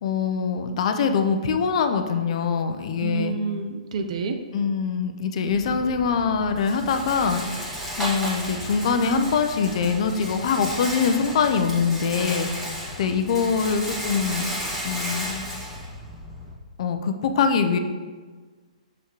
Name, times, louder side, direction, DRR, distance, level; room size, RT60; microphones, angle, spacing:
voice 1, 0.0-3.3 4.5-7.4 8.0-12.7 13.0-14.5 14.8-15.4 16.8-17.8, left 5 dB, 55° left, 7 dB, 0.6 m, -23 dB
voice 2, 3.0-4.4, right 5 dB, 65° right, 7 dB, 0.7 m, -28 dB
Rattle, 5.5-16.5, equal, 10° right, 1.7 m, -33 dB
6.3 x 5.6 x 3.0 m, 1.4 s
hypercardioid pair, 140°, 4 cm